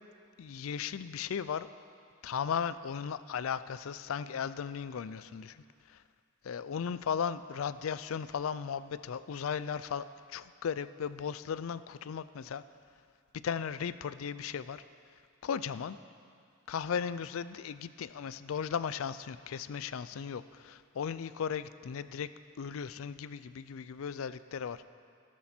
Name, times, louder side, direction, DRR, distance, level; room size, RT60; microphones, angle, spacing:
voice 1, 0.4-1.7 2.2-6.0 6.4-12.6 13.4-14.8 15.4-16.0 16.7-22.3 22.6-24.9, left 7 dB, 75° left, 15 dB, 0.4 m, -36 dB
13.0 x 12.5 x 4.4 m, 2.4 s
head